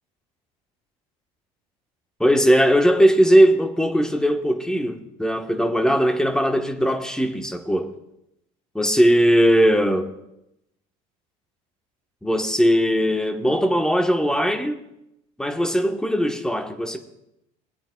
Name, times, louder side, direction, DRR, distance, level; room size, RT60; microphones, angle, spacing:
voice 1, 2.2-7.9 8.7-10.1 12.2-14.8 15.4-17.0, equal, 5° left, 1.2 m, -19 dB
21.0 x 8.9 x 2.3 m
supercardioid pair, 90°, 18 cm